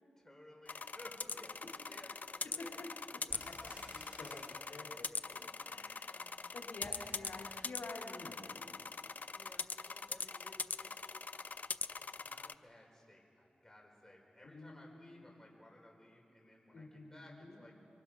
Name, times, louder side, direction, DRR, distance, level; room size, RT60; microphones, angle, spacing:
voice 1, 0.2-2.9 3.3-3.4 5.5-6.4 9.3-11.1 12.0-17.7, left 1 dB, 15° left, -1 dB, 4.6 m, -59 dB
sound 1, 0.7-12.5, left 4 dB, 50° left, 0.4 m, -43 dB
sound 2, 3.3-5.0 6.7-7.9, right 1 dB, 25° right, 4.7 m, -57 dB
voice 2, 3.4-8.8 14.4-15.4 16.7-17.6, left 2 dB, 80° left, -1 dB, 3.1 m, -50 dB
24.0 x 23.0 x 6.2 m, 2.5 s
wide cardioid pair, 100°, 4 cm